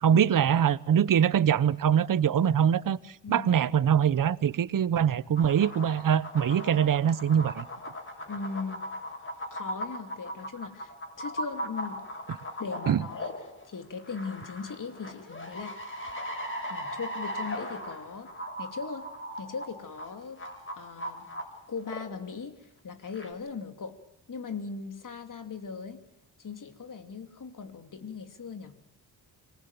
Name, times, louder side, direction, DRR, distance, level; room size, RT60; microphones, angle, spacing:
voice 1, 0.0-3.0 3.3-7.7 12.9-13.0, right 8 dB, 50° right, 0.9 m, -23 dB
sound 1, 5.4-22.3 23.1-23.3, equal, 30° left, 6.4 m, -38 dB
voice 2, 8.3-8.8 9.5-12.0 12.6-13.3 13.6-16.0 16.7-18.3 18.6-19.1 19.4-20.4 20.8-21.3 21.7-24.0 24.3-26.0 26.4-28.7, left 5 dB, 45° left, 2.8 m, -39 dB
25.5 x 19.5 x 9.2 m
cardioid pair, 95°, 43 cm